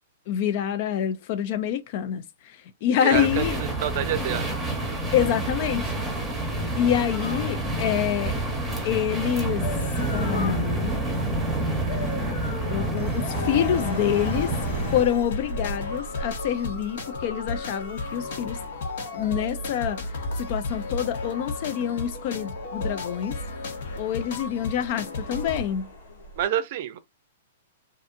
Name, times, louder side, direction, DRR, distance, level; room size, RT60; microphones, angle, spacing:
voice 1, 0.3-3.6 5.1-6.0 6.8-8.3 8.8-9.7 10.1-10.9 12.7-14.5 14.9-18.6 19.1-23.4 24.0-25.9, left 10 dB, 45° left, 0.4 m, -26 dB
voice 2, 3.0-4.5 26.4-27.0, right 11 dB, 50° right, 0.5 m, -28 dB
sound 1, 3.1-15.0, right 2 dB, 5° right, 0.9 m, -28 dB
sound 2, 7.1-26.4, left 2 dB, 80° left, 1.3 m, -38 dB
sound 3, 12.9-25.6, left 3 dB, 65° left, 0.9 m, -35 dB
2.5 x 2.5 x 2.5 m
hypercardioid pair, 140°, 0 cm